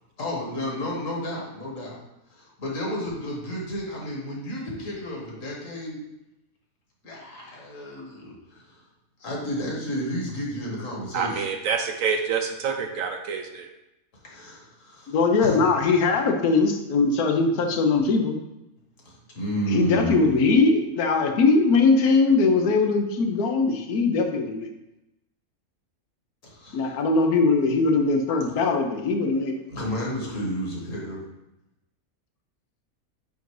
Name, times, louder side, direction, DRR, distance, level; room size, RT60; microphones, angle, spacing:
voice 1, 0.2-1.9 2.3-6.0 7.0-8.8 9.2-11.6 14.2-15.9 19.1-20.4 26.4-27.0 29.7-31.2, equal, 60° left, -3 dB, 1.8 m, -32 dB
voice 2, 11.1-13.7, right 6 dB, 70° right, 4 dB, 1.0 m, -27 dB
voice 3, 15.1-18.4 19.7-24.7 26.7-29.6, left 4 dB, 85° left, 4 dB, 1.3 m, -21 dB
7.9 x 2.6 x 4.7 m, 0.91 s
omnidirectional pair, 1.6 m